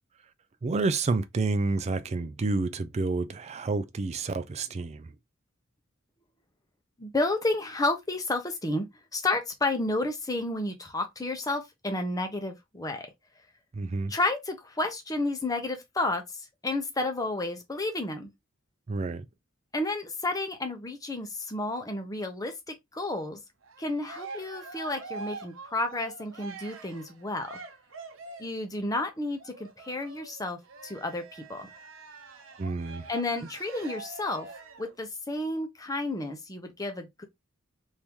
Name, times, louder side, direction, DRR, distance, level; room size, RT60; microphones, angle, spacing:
voice 1, 0.6-5.1 13.7-14.1 18.9-19.3 32.6-33.0, right 3 dB, 35° right, 0.4 m, -29 dB
voice 2, 7.0-13.1 14.1-18.3 19.7-23.4 23.8-27.6 28.4-31.7 33.1-34.5 34.8-37.2, left 2 dB, 20° left, 0.8 m, -31 dB
Cheering, 23.6-28.6 29.4-35.0, right 3 dB, 80° right, 0.8 m, -45 dB
3.5 x 2.7 x 2.9 m
head